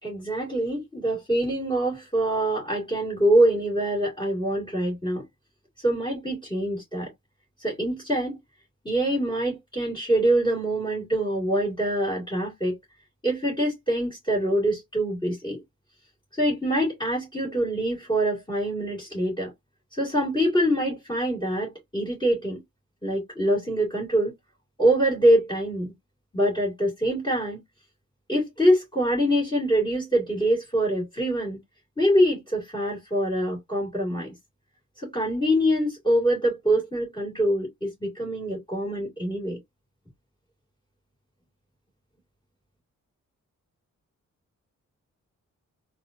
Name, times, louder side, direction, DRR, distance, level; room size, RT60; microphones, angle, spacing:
voice 1, 0.0-5.2 5.8-7.1 7.6-8.4 8.8-12.8 13.2-15.6 16.4-19.5 19.9-22.6 23.0-24.3 24.8-25.9 26.3-27.6 28.3-31.6 32.0-34.3 35.0-39.6, right 1 dB, 15° left, 2.3 m, -24 dB
4.1 x 2.6 x 2.5 m
wide cardioid pair, 145°, 30 cm